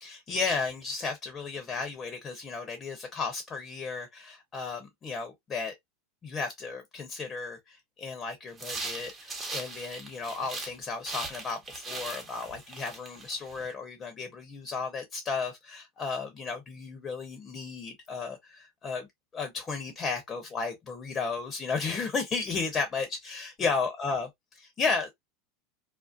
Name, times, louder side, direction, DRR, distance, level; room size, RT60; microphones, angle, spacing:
voice 1, 0.0-5.7 6.2-19.1 19.3-25.1, left 4 dB, 25° left, 0.7 m, -34 dB
sound 1, 8.5-10.8 11.0-13.6, right 3 dB, 25° right, 0.9 m, -39 dB
2.5 x 2.0 x 2.4 m
supercardioid pair, 120°, 0 cm